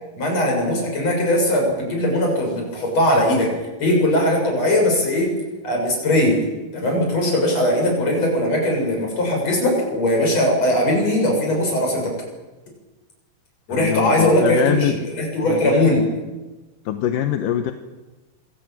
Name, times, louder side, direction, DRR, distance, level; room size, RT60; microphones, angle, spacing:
voice 1, 0.2-3.5 3.8-5.3 5.6-6.4 6.7-12.1 13.7-16.1, left 1 dB, 40° left, 0 dB, 8.3 m, -19 dB
voice 2, 13.7-15.0 15.5-16.0 16.9-17.7, left 10 dB, 70° left, 7 dB, 2.5 m, -23 dB
25.0 x 18.0 x 9.0 m, 1.2 s
omnidirectional pair, 4.4 m